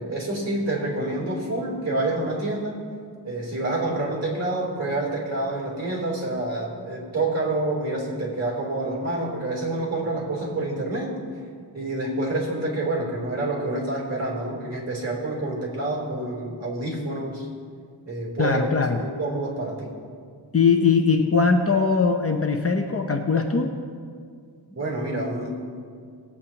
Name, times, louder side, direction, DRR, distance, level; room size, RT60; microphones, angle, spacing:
voice 1, 0.0-2.8 3.2-11.1 11.7-17.5 18.1-18.6 19.0-19.9 24.7-25.5, right 2 dB, 35° right, -4 dB, 3.4 m, -28 dB
voice 2, 18.4-19.0 20.5-23.8, left 5 dB, 35° left, 3 dB, 0.7 m, -21 dB
19.0 x 8.5 x 2.9 m, 2.1 s
wide cardioid pair, 110°, 43 cm